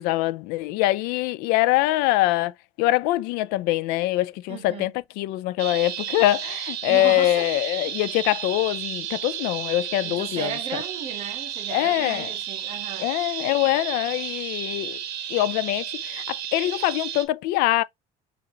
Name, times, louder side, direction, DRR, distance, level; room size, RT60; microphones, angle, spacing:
voice 1, 0.0-10.8 11.7-12.3 13.0-15.0 15.3-17.8, left 16 dB, 80° left, 0.4 m, -24 dB
voice 2, 4.5-4.9 6.8-7.5 7.8-7.9 10.0-13.1, right 8 dB, 40° right, 0.8 m, -36 dB
sound 1, 5.6-17.2, right 9 dB, 75° right, 0.7 m, -33 dB
5.7 x 2.5 x 2.9 m
cardioid pair, 165°, 16 cm